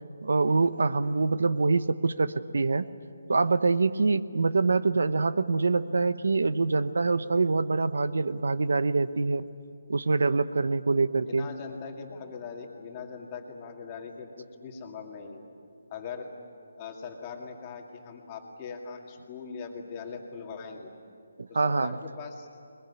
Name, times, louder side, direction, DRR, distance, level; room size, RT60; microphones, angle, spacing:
voice 1, 0.2-2.9 3.3-9.4 9.9-11.5 21.4-22.0, right 3 dB, 75° right, 14 dB, 0.9 m, -25 dB
voice 2, 11.2-15.4 15.9-16.3 16.8-20.9 21.5-22.5, left 5 dB, 20° left, 2 dB, 2.2 m, -41 dB
22.0 x 21.5 x 9.7 m, 2.4 s
hypercardioid pair, 170°, 0 cm